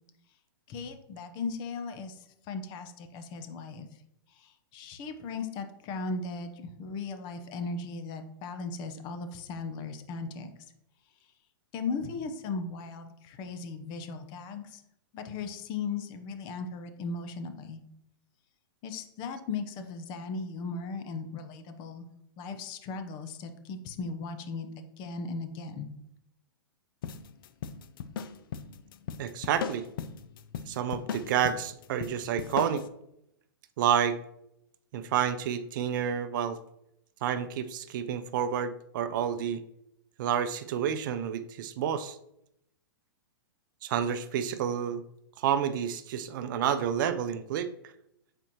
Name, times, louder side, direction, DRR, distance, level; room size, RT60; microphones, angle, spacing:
voice 1, 0.7-3.9 4.3-10.5 11.7-14.8 15.1-17.8 18.8-22.1 22.4-25.9, left 4 dB, 35° left, 8 dB, 0.9 m, -37 dB
sound 1, 27.0-32.9, left 7 dB, 65° left, 0.5 m, -38 dB
voice 2, 29.2-29.9 30.7-32.8 33.8-34.2 34.9-36.6 37.2-39.6 40.2-42.2 43.8-45.0 45.4-47.7, right 9 dB, 55° right, 12 dB, 0.5 m, -29 dB
8.8 x 4.4 x 3.0 m, 0.79 s
hypercardioid pair, 120°, 13 cm